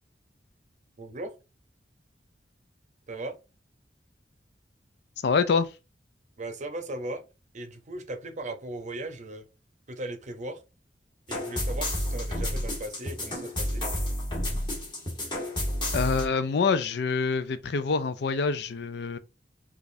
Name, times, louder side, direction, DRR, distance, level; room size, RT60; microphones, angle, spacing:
voice 1, 1.0-1.3 3.1-3.3 6.4-7.2 7.5-9.4 9.9-10.6 11.3-13.8, right 1 dB, 45° right, 0.7 m, -37 dB
voice 2, 5.2-5.7 15.9-19.2, left 5 dB, 70° left, 0.4 m, -26 dB
sound 1, 11.3-16.3, left 1 dB, 25° left, 1.4 m, -30 dB
5.0 x 2.4 x 2.6 m
head